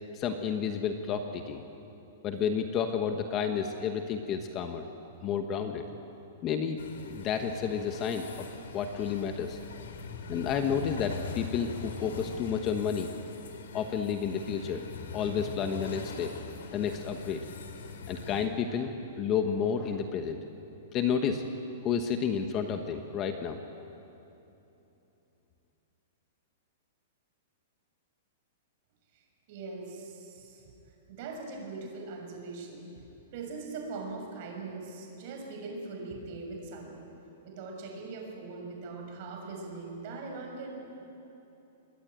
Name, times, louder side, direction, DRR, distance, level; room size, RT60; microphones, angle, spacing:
voice 1, 0.1-1.6 2.2-4.9 5.2-5.8 6.4-6.8 7.1-8.5 8.7-9.6 10.3-13.1 13.7-14.8 15.1-16.3 16.7-17.4 18.1-18.9 19.2-20.4 20.9-21.4 21.8-23.6, left 7 dB, 20° left, 6 dB, 1.1 m, -31 dB
sound 1, 6.8-18.5, left 5 dB, 85° left, 3.3 m, -42 dB
voice 2, 29.5-30.6 31.1-32.9 33.3-37.1 37.4-40.8, right 3 dB, 35° right, 1 dB, 6.1 m, -41 dB
28.5 x 21.5 x 9.0 m, 3.0 s
supercardioid pair, 175°, 0 cm